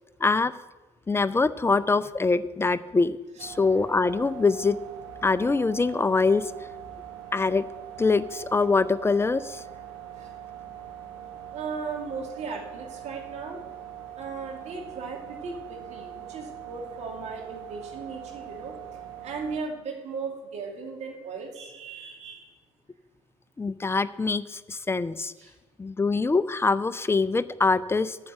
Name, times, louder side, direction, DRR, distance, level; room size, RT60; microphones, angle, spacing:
voice 1, 0.2-0.5 1.1-4.8 5.2-6.5 7.3-7.6 8.0-9.6 23.6-25.3 25.8-28.2, left 4 dB, 15° left, 16 dB, 0.5 m, -24 dB
sound 1, 3.4-19.6, right 10 dB, 70° right, 1.8 m, -42 dB
voice 2, 11.5-13.6 14.1-18.7 19.2-22.5 25.4-25.5, right 4 dB, 50° right, 1 dB, 2.6 m, -37 dB
8.5 x 6.6 x 7.9 m, 1.2 s
figure-of-eight pair, 50°, 14 cm